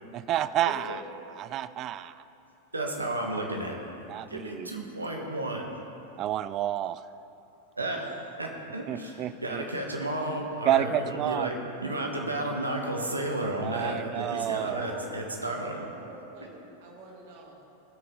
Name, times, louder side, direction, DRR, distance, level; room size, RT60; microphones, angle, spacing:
voice 1, 0.1-1.0 1.4-2.2 4.1-4.7 6.2-7.0 8.9-9.6 10.7-11.5 13.6-14.9, right 12 dB, 35° right, 15 dB, 0.3 m, -30 dB
voice 2, 2.7-3.9 4.3-5.7 7.8-15.8, right 1 dB, 80° right, 1 dB, 1.4 m, -32 dB
voice 3, 14.7-15.2 15.8-17.7, right 3 dB, 50° right, 0 dB, 2.1 m, -45 dB
17.5 x 6.6 x 3.9 m, 2.8 s
figure-of-eight pair, 90°, 0 cm